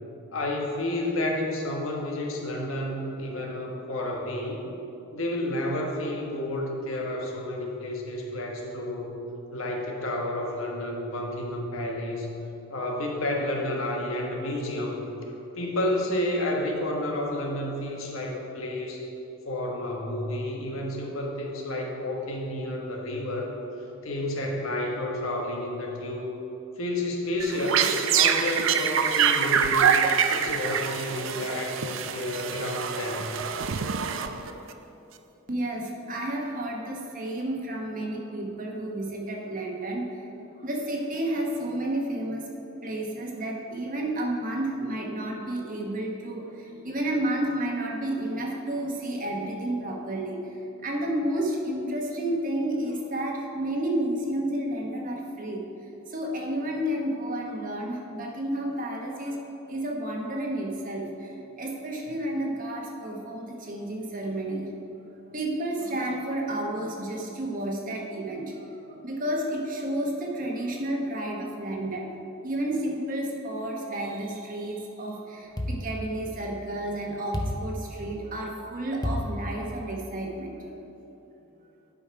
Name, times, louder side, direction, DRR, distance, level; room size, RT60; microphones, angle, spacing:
voice 1, 0.3-4.7 5.1-9.2 9.5-12.3 12.7-15.0 15.6-19.1 19.4-23.5 24.0-26.3 26.8-30.0 30.3-33.3, left 1 dB, 80° left, 0 dB, 1.3 m, -30 dB
sound 1, 27.4-34.7, right 7 dB, 70° right, 0.4 m, -25 dB
voice 2, 35.5-40.1 40.6-42.5 42.8-50.4 50.8-55.6 56.1-59.4 59.7-64.7 65.3-72.1 72.4-80.7, right 1 dB, 40° right, 0 dB, 1.1 m, -31 dB
sound 2, 75.6-76.7 77.3-78.4 79.0-80.1, equal, 20° left, 0.6 m, -33 dB
11.0 x 5.4 x 4.6 m, 2.9 s
head